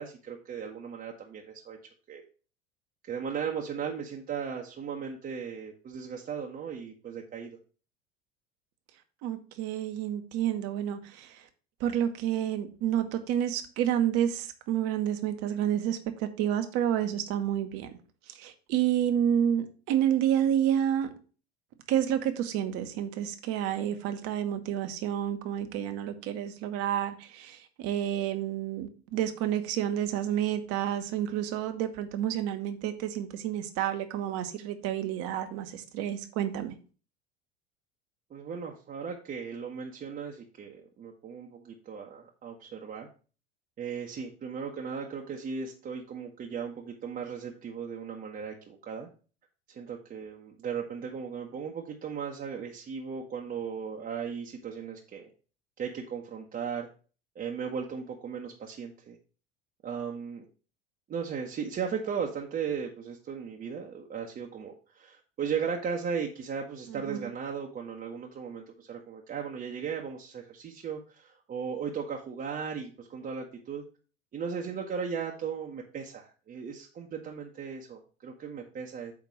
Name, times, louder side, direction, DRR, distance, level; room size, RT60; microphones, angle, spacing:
voice 1, 0.0-1.8 2.1-2.2 3.1-7.6 38.3-43.1 43.8-49.1 49.7-55.3 55.8-56.9 57.3-59.2 59.8-60.4 61.1-73.8 74.3-79.1, right 6 dB, 30° right, 1.0 m, -36 dB
voice 2, 9.2-11.4 11.8-17.9 18.4-21.1 21.9-36.7 66.9-67.3, right 10 dB, 50° right, 1.1 m, -29 dB
8.4 x 2.9 x 6.3 m
figure-of-eight pair, 75°, 31 cm